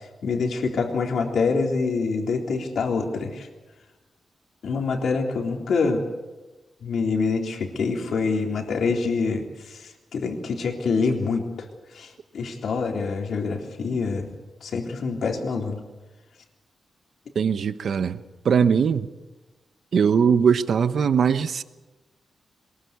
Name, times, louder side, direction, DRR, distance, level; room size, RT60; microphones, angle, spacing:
voice 1, 0.2-3.5 4.6-6.0 6.8-11.7 11.9-14.3 14.6-15.8, left 4 dB, 75° left, 3.7 m, -26 dB
voice 2, 17.3-19.1 19.9-21.6, right 6 dB, 65° right, 0.9 m, -21 dB
23.0 x 21.5 x 8.2 m
wide cardioid pair, 125°, 0 cm